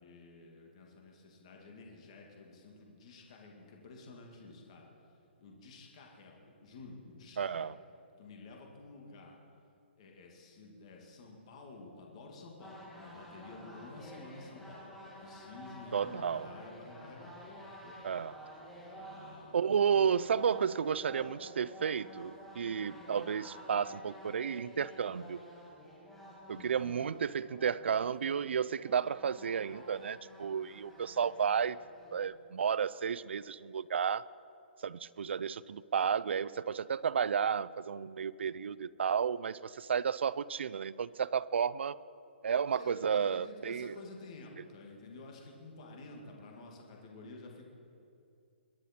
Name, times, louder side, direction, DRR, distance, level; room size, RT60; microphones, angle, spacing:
voice 1, 0.0-4.9 5.4-7.7 8.2-9.4 10.0-18.0 18.9-19.6 22.8-23.0 26.5-27.1 42.7-47.6, left 3 dB, 35° left, 0 dB, 1.9 m, -51 dB
voice 2, 7.4-7.7 15.9-16.6 18.0-18.3 19.5-25.4 26.5-31.8 32.1-34.2 34.8-42.0 42.4-44.0, right 7 dB, 75° right, 19 dB, 0.4 m, -32 dB
sound 1, 12.6-32.2, equal, ahead, 1.5 m, -51 dB
22.0 x 9.8 x 4.3 m, 2.6 s
hypercardioid pair, 175°, 6 cm